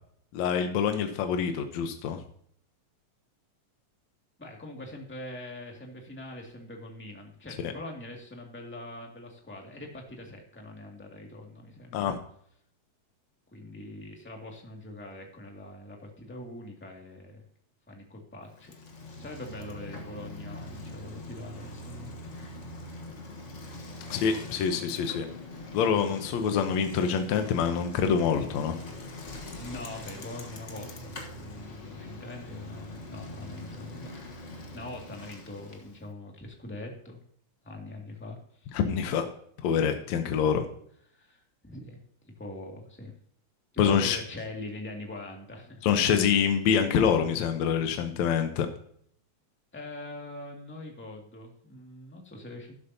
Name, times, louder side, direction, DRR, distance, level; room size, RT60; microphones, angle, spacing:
voice 1, 0.3-2.2 7.6-7.7 11.9-12.2 24.1-25.3 25.7-28.8 38.7-39.3 39.6-40.7 43.8-44.2 45.8-48.7, left 7 dB, 75° left, 6 dB, 2.2 m, -26 dB
voice 2, 4.4-12.1 13.5-17.4 17.9-18.7 19.2-22.2 29.4-34.1 34.7-37.2 37.6-38.7 40.4-40.5 41.1-42.0 42.2-43.1 43.8-46.0 49.7-52.7, left 2 dB, 5° left, 0 dB, 1.7 m, -43 dB
Bicycle, 18.5-36.0, left 1 dB, 50° left, 0.8 m, -43 dB
12.5 x 11.5 x 2.8 m, 0.64 s
omnidirectional pair, 3.3 m